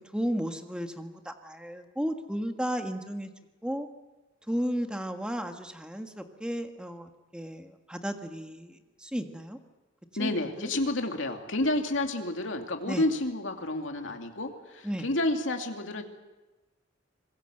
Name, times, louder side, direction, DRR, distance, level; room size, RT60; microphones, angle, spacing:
voice 1, 0.1-3.3 3.6-3.9 4.5-9.6 10.2-10.7 12.9-13.0 14.8-15.1, equal, 5° right, 6 dB, 1.5 m, -34 dB
voice 2, 10.2-16.0, left 1 dB, 70° left, 4 dB, 2.6 m, -30 dB
26.0 x 21.0 x 7.9 m, 1.1 s
head